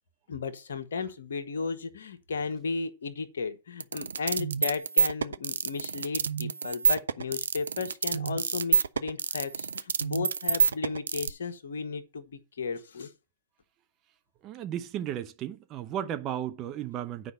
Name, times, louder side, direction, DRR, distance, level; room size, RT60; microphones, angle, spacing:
voice 1, 0.3-13.1, left 4 dB, 60° left, 1.3 m, -34 dB
sound 1, 3.8-11.3, right 6 dB, 65° right, 0.5 m, -27 dB
voice 2, 14.4-17.3, right 10 dB, 30° right, 0.7 m, -34 dB
9.6 x 5.1 x 5.6 m
figure-of-eight pair, 110°, 0 cm